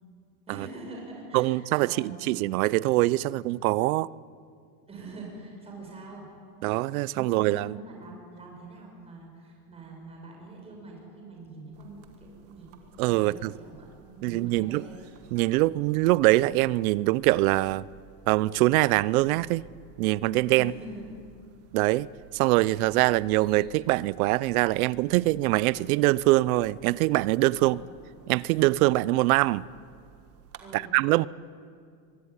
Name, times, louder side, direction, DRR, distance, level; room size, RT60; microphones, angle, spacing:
voice 1, 0.5-2.2 4.9-6.3 7.1-14.9 20.5-21.0 27.5-27.8 30.6-30.9, right 3 dB, 10° right, 5.9 m, -44 dB
voice 2, 1.3-4.1 6.6-7.8 13.0-13.5 14.2-14.9 15.3-17.9 18.3-19.6 20.0-20.7 21.7-22.1 22.3-27.8 28.3-29.7 30.7-31.3, right 19 dB, 65° right, 0.7 m, -23 dB
sound 1, 11.7-30.6, right 8 dB, 30° right, 1.5 m, -55 dB
23.0 x 23.0 x 9.7 m
supercardioid pair, 175°, 47 cm